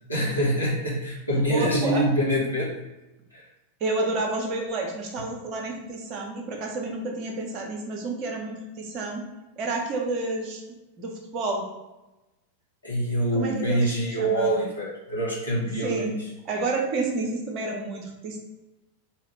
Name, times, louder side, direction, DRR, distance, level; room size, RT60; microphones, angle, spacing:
voice 1, 0.1-2.8 3.3-3.4 12.8-16.2, right 1 dB, 85° left, -7 dB, 1.5 m, -25 dB
voice 2, 1.5-2.1 3.8-9.2 9.6-10.6 11.0-11.6 13.3-14.7 15.8-16.1 16.4-18.4, right 3 dB, 40° right, 1 dB, 1.0 m, -30 dB
3.4 x 2.9 x 4.7 m, 1.0 s
figure-of-eight pair, 90°, 0 cm